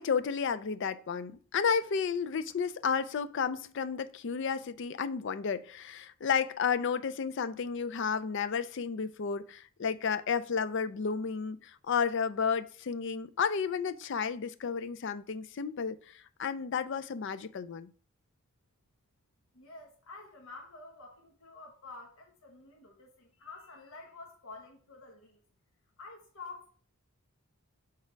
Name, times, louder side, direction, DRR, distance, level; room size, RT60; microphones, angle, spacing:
voice 1, 0.0-17.9, left 6 dB, 55° left, 0.4 m, -32 dB
voice 2, 19.5-25.4 26.0-26.7, left 3 dB, 70° left, 1.1 m, -49 dB
6.6 x 3.6 x 4.5 m
head